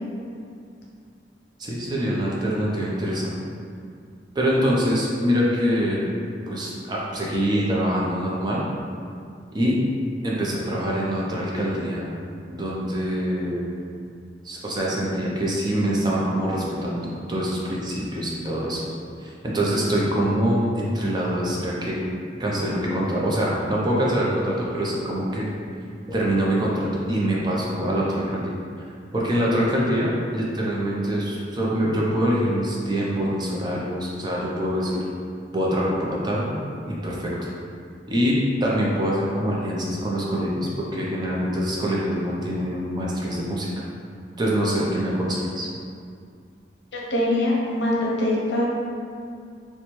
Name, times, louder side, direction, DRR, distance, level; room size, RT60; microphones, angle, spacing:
voice 1, 1.6-3.3 4.3-6.1 6.5-8.6 9.5-9.8 10.2-12.1 12.5-13.7 14.4-18.8 19.2-21.9 22.4-25.5 26.1-28.5 28.8-35.0 35.5-36.6 36.8-37.3 38.1-43.8 44.4-45.7, equal, 25° right, -5 dB, 0.5 m, -24 dB
voice 2, 46.9-48.7, left 1 dB, 70° left, -4 dB, 0.7 m, -23 dB
4.2 x 2.2 x 3.0 m, 2.4 s
head